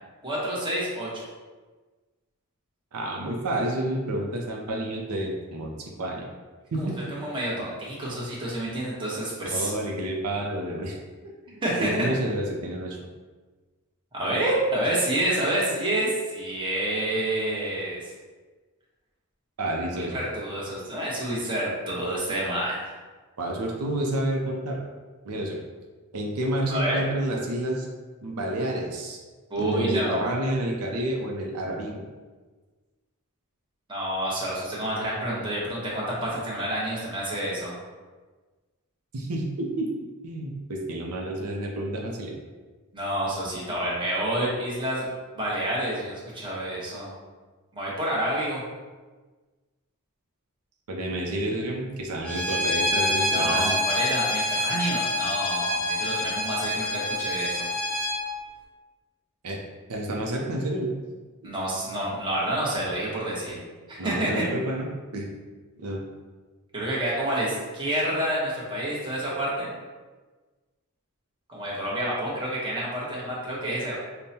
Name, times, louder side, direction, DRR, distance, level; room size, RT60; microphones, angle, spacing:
voice 1, 0.2-1.2 6.8-9.7 11.6-11.9 14.1-18.1 20.1-22.9 26.7-27.0 29.5-30.3 33.9-37.7 42.9-45.1 45.3-47.1 47.7-48.6 53.3-57.7 61.4-63.6 63.9-64.5 66.7-69.7 71.5-73.9, right 1 dB, 20° right, -6 dB, 0.9 m, -28 dB
voice 2, 2.9-6.3 6.7-7.0 9.5-11.0 11.2-13.0 19.6-20.2 23.4-24.8 25.2-25.6 26.1-27.9 28.2-29.2 29.6-32.0 39.1-39.9 40.2-42.3 50.9-53.8 59.4-59.6 59.9-60.9 64.0-64.9 65.1-65.4 65.8-66.0, right 1 dB, 90° right, 0 dB, 0.5 m, -29 dB
Bowed string instrument, 52.2-58.2, left 1 dB, 5° left, 0.5 m, -26 dB
5.2 x 2.1 x 2.8 m, 1.3 s
head